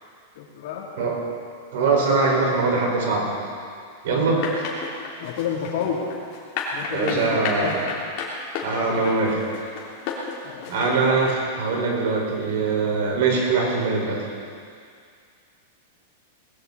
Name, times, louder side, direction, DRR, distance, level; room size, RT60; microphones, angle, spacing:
voice 1, 0.3-0.9 4.3-4.6 5.2-6.1 6.7-7.8 10.4-10.7, left 7 dB, 60° left, -2 dB, 3.1 m, -30 dB
voice 2, 1.7-3.3 4.0-4.5 6.9-7.7 8.6-9.4 10.7-14.2, right 4 dB, 60° right, -2 dB, 5.0 m, -22 dB
sound 1, 4.4-11.3, left 5 dB, 40° left, 3.3 m, -31 dB
20.0 x 16.0 x 4.2 m, 2.3 s
supercardioid pair, 165°, 0 cm